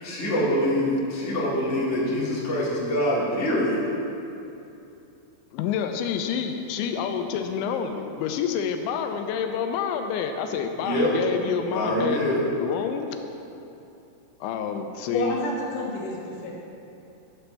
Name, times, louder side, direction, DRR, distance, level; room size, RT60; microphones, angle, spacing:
voice 1, 0.0-3.8 10.8-12.4, equal, 40° left, -9 dB, 1.0 m, -25 dB
voice 2, 5.5-12.2 12.6-13.1 14.4-15.4, left 7 dB, 85° left, 6 dB, 2.9 m, -28 dB
voice 3, 15.1-16.5, left 1 dB, 60° left, -5 dB, 2.6 m, -29 dB
13.0 x 7.0 x 3.3 m, 2.8 s
omnidirectional pair, 5.2 m